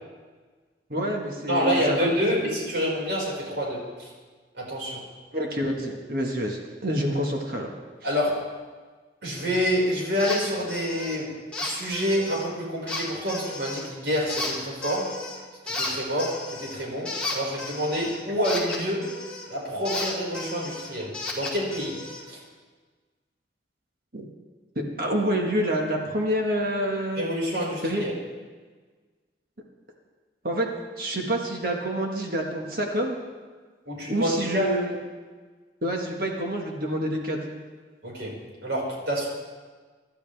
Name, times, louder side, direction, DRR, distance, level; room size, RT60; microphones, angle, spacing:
voice 1, 0.9-2.2 5.3-7.7 24.1-24.3 24.7-27.2 27.8-28.0 30.4-30.7 31.0-33.2 34.1-34.9 35.8-37.4, equal, 55° right, 0 dB, 1.8 m, -27 dB
voice 2, 1.5-4.1 4.6-5.0 8.0-8.4 9.2-11.3 11.6-15.1 15.6-19.1 19.5-22.0 22.3-22.4 27.2-28.1 33.9-34.8 38.0-38.4 38.6-39.3, equal, 85° right, -3 dB, 5.5 m, -27 dB
sound 1, 10.2-10.4 10.7-11.2 11.5-12.4 12.9-13.9 14.3-15.4 15.7-19.5 19.8-22.2, left 2 dB, 5° left, 2.5 m, -34 dB
25.5 x 11.5 x 3.5 m, 1.4 s
head